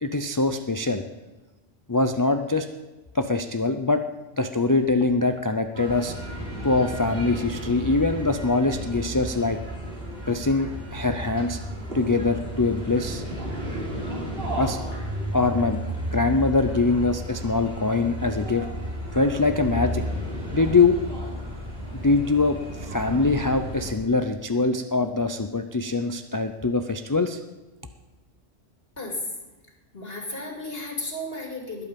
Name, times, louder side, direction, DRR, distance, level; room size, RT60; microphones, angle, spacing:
voice 1, 0.0-1.0 1.9-2.7 3.1-4.0 4.4-6.1 6.6-9.6 10.3-11.6 11.9-13.2 14.6-14.8 15.3-15.8 16.1-18.7 19.1-20.0 20.5-21.0 21.9-27.4, left 3 dB, 25° left, 7 dB, 0.4 m, -23 dB
sound 1, 5.7-23.9, equal, 50° right, 3.4 m, -33 dB
voice 2, 29.9-31.8, left 1 dB, 50° left, 1 dB, 2.9 m, -34 dB
20.5 x 8.5 x 5.3 m, 1.2 s
omnidirectional pair, 1.3 m